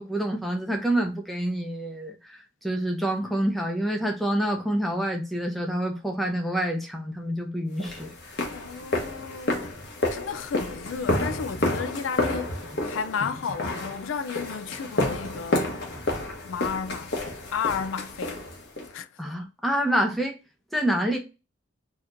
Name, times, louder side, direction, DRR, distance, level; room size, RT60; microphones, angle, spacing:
voice 1, 0.0-8.1 19.2-20.4 20.7-21.2, right 1 dB, ahead, 0.7 m, -27 dB
sound 1, 7.8-18.9, left 1 dB, 55° left, 1.1 m, -30 dB
voice 2, 8.5-9.8 10.1-15.7 16.5-17.2 17.5-18.5 18.9-19.1, left 6 dB, 80° left, 0.4 m, -33 dB
4.2 x 2.8 x 2.5 m
head